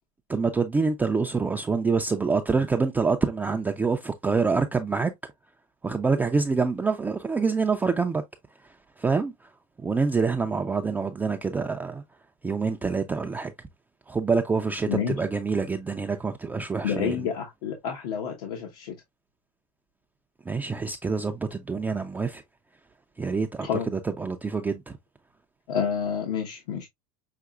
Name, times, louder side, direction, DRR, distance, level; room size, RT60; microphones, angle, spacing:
voice 1, 0.3-5.1 5.8-8.2 8.6-9.5 9.8-12.0 12.4-13.5 14.1-17.3 20.5-22.4 23.2-25.0, right 4 dB, 10° right, 0.3 m, -26 dB
voice 2, 16.8-18.9 23.7-23.9 25.7-26.9, left 7 dB, 80° left, 1.1 m, -29 dB
5.8 x 2.9 x 2.3 m
supercardioid pair, 130°, 19 cm